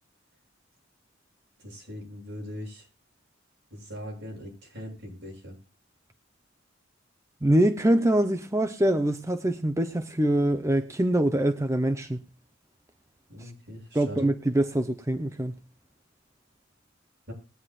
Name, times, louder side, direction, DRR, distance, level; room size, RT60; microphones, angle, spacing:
voice 1, 1.6-2.9 3.7-5.6 13.3-14.3 17.3-17.4, equal, 65° right, 7.7 m, -40 dB
voice 2, 7.4-12.2 13.9-15.6, right 1 dB, 15° right, 0.7 m, -24 dB
21.0 x 9.4 x 2.4 m
head